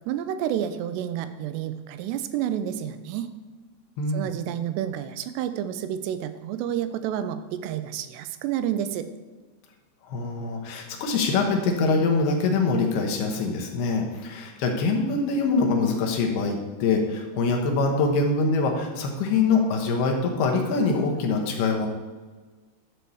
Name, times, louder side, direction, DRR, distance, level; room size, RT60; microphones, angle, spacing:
voice 1, 0.1-3.3 4.1-9.1, right 10 dB, 85° right, 11 dB, 2.8 m, -29 dB
voice 2, 4.0-4.3 10.1-21.9, left 4 dB, 75° left, 2 dB, 3.2 m, -24 dB
11.5 x 4.6 x 7.0 m, 1.3 s
omnidirectional pair, 4.8 m